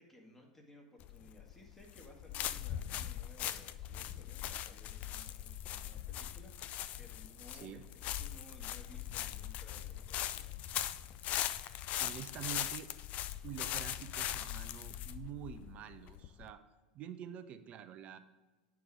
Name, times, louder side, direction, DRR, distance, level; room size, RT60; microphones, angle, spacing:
voice 1, 0.0-10.5, left 1 dB, 10° left, 0 dB, 2.0 m, -59 dB
sound 1, 1.0-16.5, left 12 dB, 40° left, 0.4 m, -40 dB
voice 2, 7.5-7.8 12.0-12.9 13.4-16.6 16.9-18.2, right 10 dB, 40° right, 10 dB, 0.7 m, -47 dB
9.2 x 4.7 x 4.8 m, 1.3 s
figure-of-eight pair, 80°, 4 cm